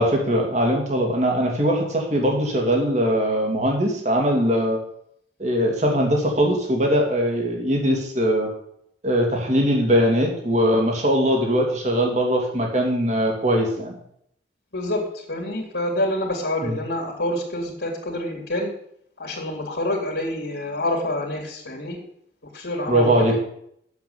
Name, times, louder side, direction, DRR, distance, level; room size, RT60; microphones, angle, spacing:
voice 1, 0.0-4.8 5.4-8.5 9.0-14.0 16.6-16.7 22.9-23.3, equal, 40° right, 1 dB, 2.6 m, -21 dB
voice 2, 14.7-18.7 19.2-22.0 22.5-23.4, left 1 dB, 75° left, -4 dB, 2.6 m, -27 dB
8.1 x 7.3 x 8.6 m, 0.71 s
head